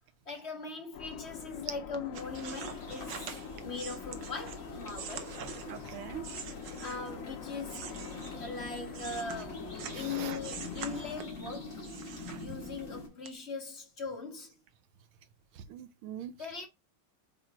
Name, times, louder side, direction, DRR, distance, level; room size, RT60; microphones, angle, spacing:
voice 1, 0.2-5.4 6.8-7.8 8.3-11.8 12.4-14.5 16.4-16.7, left 4 dB, 35° left, 1.7 m, -40 dB
sound 1, 0.9-11.2, left 8 dB, 75° left, 0.7 m, -46 dB
sound 2, 1.9-7.2 7.6-10.1 10.4-11.4 11.8-12.9 13.2-13.3, right 8 dB, 65° right, 1.4 m, -45 dB
sound 3, 2.1-13.1, left 2 dB, 50° left, 4.2 m, -44 dB
voice 2, 5.7-6.2 9.9-10.5 15.5-16.3, right 10 dB, 80° right, 1.6 m, -43 dB
7.7 x 3.1 x 4.4 m
omnidirectional pair, 2.3 m